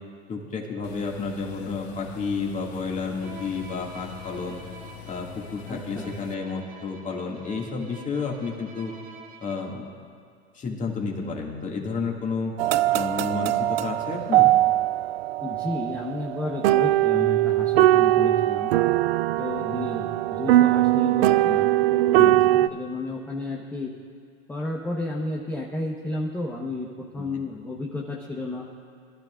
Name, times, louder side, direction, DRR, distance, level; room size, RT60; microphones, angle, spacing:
voice 1, 0.3-4.6 5.1-8.9 9.4-9.8 10.5-12.5 12.9-14.5 22.1-22.6 27.2-27.3, left 4 dB, 25° left, -1 dB, 2.3 m, -31 dB
sound 1, 0.8-6.3, left 12 dB, 75° left, 0.7 m, -44 dB
Bowed string instrument, 3.2-9.9, right 3 dB, 25° right, 1.1 m, -47 dB
voice 2, 5.7-6.1 15.4-18.7 19.4-22.4 22.7-23.9 24.5-28.7, left 2 dB, 5° left, -3 dB, 1.1 m, -32 dB
sound 2, 12.6-22.7, right 15 dB, 65° right, 0.5 m, -21 dB
22.5 x 12.0 x 2.5 m, 2.2 s
hypercardioid pair, 115°, 33 cm